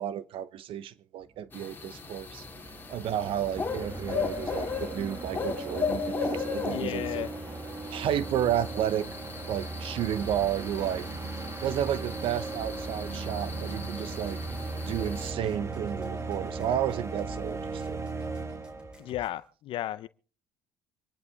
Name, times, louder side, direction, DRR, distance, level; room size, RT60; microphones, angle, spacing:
voice 1, 0.0-2.4 2.9-7.3 7.9-9.1 9.5-11.1 11.6-14.4 14.9-18.0, right 10 dB, 55° right, 0.9 m, -32 dB
sound 1, 1.4-1.5 1.6-19.1, right 3 dB, 25° right, 1.7 m, -37 dB
sound 2, 1.5-15.3, left 5 dB, 20° left, 3.3 m, -37 dB
voice 2, 6.7-7.3 19.0-20.1, left 13 dB, 55° left, 0.6 m, -34 dB
sound 3, 10.2-19.4, equal, 10° right, 3.4 m, -48 dB
25.5 x 11.0 x 3.6 m
supercardioid pair, 100°, 11 cm